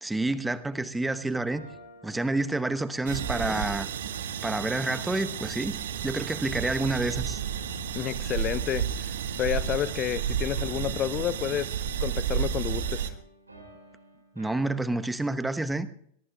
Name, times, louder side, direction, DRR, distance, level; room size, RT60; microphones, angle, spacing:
voice 1, 0.0-1.6 2.0-3.9 4.4-5.8 6.0-7.4 14.4-15.9, right 2 dB, 5° right, 1.0 m, -28 dB
sound 1, 1.5-4.5 4.9-6.3 6.7-8.1 8.4-10.1 10.5-15.2, right 1 dB, 80° right, 5.4 m, -51 dB
sound 2, 3.1-13.1, right 8 dB, 60° right, 1.4 m, -32 dB
voice 2, 8.0-13.2, left 11 dB, 30° left, 0.5 m, -30 dB
22.5 x 21.5 x 2.3 m
figure-of-eight pair, 90°, 0 cm